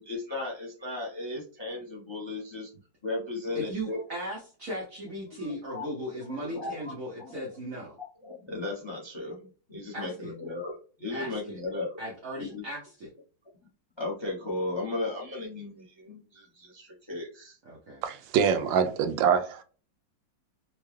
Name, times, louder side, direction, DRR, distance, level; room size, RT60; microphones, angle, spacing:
voice 1, 0.0-2.7 3.0-4.0 5.4-5.9 6.3-7.6 8.0-11.9 12.4-12.6 14.0-17.6, left 2 dB, 50° left, 0.3 m, -36 dB
voice 2, 3.5-8.0 9.9-10.3 11.1-11.6 12.0-13.1 17.6-18.0, equal, 55° right, 1.1 m, -37 dB
voice 3, 18.0-19.6, right 7 dB, 80° right, 1.3 m, -25 dB
4.6 x 2.0 x 3.1 m
omnidirectional pair, 2.1 m